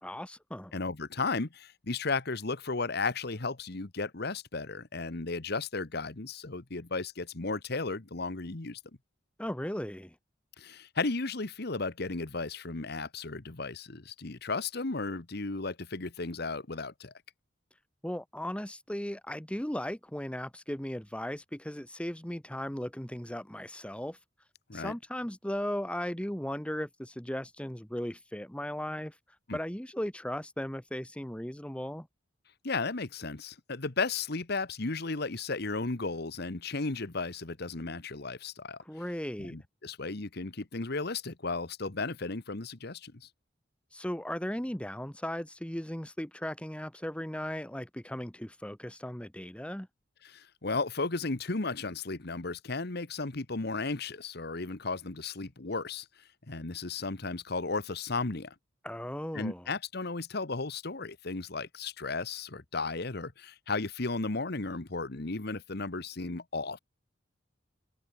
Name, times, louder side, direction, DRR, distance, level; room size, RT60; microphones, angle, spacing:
voice 1, 0.0-0.8 9.4-10.1 18.0-24.2 24.7-29.2 29.5-32.1 38.8-39.6 43.9-49.9 58.8-59.7, equal, 5° left, 1.3 m, -37 dB
voice 2, 0.7-8.8 10.6-17.1 24.7-24.9 29.5-29.6 32.6-38.8 39.4-43.3 50.2-56.0 56.5-58.5 59.3-66.8, left 3 dB, 55° left, 1.3 m, -34 dB
head